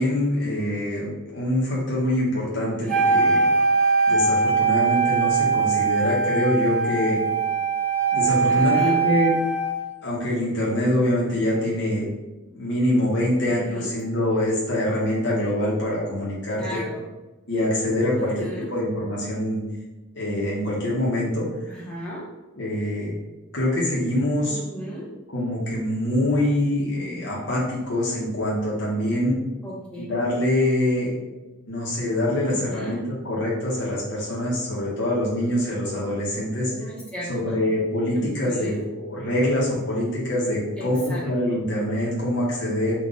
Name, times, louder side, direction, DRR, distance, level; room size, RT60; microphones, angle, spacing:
voice 1, 0.0-3.5 4.1-7.2 8.1-9.3 10.0-12.0 12.5-16.9 17.5-19.6 20.1-21.5 22.6-23.1 23.5-24.6 25.3-29.4 30.0-31.1 31.7-36.7 37.3-42.9, left 1 dB, 55° left, -6 dB, 0.9 m, -24 dB
voice 2, 2.6-3.1 8.5-9.0 13.4-13.9 16.6-17.1 18.2-18.7 21.7-22.2 24.5-25.1 29.6-30.0 32.5-33.0 36.7-37.7 38.1-38.8 40.8-41.2 41.5-41.6, equal, 5° left, -8 dB, 1.0 m, -36 dB
Wind instrument woodwind instrument, 2.9-9.8, right 4 dB, 40° right, 0.6 m, -21 dB
3.9 x 2.4 x 3.6 m, 1.1 s
head